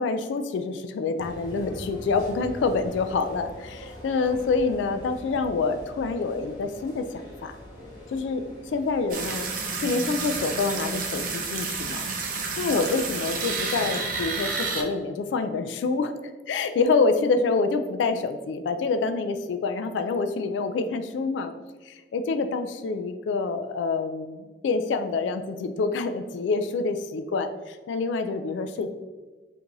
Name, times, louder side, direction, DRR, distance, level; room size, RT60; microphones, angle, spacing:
voice 1, 0.0-7.5 8.1-9.5 9.8-12.1 12.6-16.1 16.5-21.5 21.8-28.9, left 4 dB, 80° left, 8 dB, 0.3 m, -27 dB
sound 1, 1.2-9.6, equal, 25° left, 1.5 m, -43 dB
sound 2, 9.1-14.8, right 4 dB, 45° right, 0.5 m, -30 dB
4.5 x 2.7 x 2.6 m, 1.3 s
head